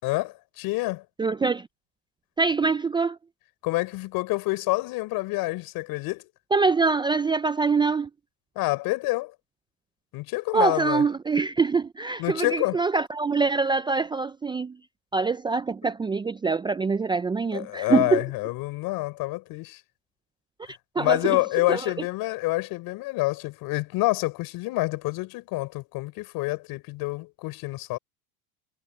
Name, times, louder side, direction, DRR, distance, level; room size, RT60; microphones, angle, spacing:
voice 1, 0.0-1.0 3.6-6.3 8.6-9.3 10.1-11.0 12.2-12.8 17.5-19.8 21.0-28.0, left 21 dB, 60° left, 6.1 m, -27 dB
voice 2, 1.2-1.7 2.4-3.2 6.5-8.1 10.5-14.8 15.1-18.2 21.0-21.4 21.7-21.8, right 4 dB, 10° right, 0.5 m, -24 dB
supercardioid pair, 115°, 41 cm